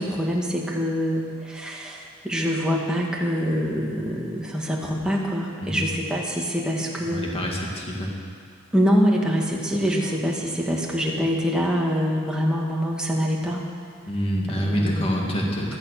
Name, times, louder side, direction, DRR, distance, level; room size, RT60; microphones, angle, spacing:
voice 1, 0.0-7.3 8.7-13.6 14.6-15.3, equal, 5° right, -3 dB, 2.1 m, -25 dB
voice 2, 7.1-8.2 14.0-15.8, equal, 25° left, -2 dB, 2.2 m, -26 dB
16.0 x 13.0 x 6.8 m, 2.1 s
head